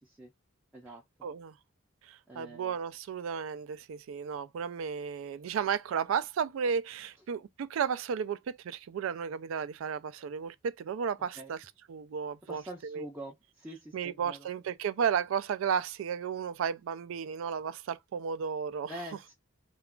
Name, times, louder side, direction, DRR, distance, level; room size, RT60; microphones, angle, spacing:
voice 1, 1.2-1.5 2.0-13.1 13.9-18.9, right 7 dB, 70° right, 0.3 m, -33 dB
voice 2, 2.3-2.7 11.4-11.5 12.5-14.5 18.9-19.3, right 1 dB, 5° right, 0.4 m, -45 dB
2.3 x 2.3 x 3.5 m
head